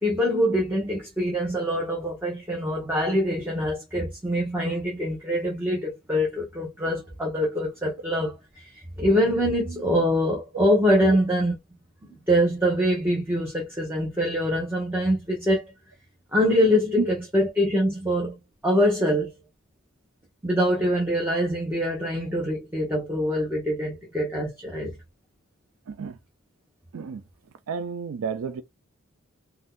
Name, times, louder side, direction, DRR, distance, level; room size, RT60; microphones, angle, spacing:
voice 1, 0.0-11.5 12.0-15.6 16.3-18.4 18.6-19.3 20.4-24.9, equal, 10° right, 0.8 m, -24 dB
voice 2, 25.9-26.2 26.9-27.2 27.7-28.6, right 5 dB, 85° right, 0.4 m, -30 dB
2.6 x 2.2 x 3.5 m
head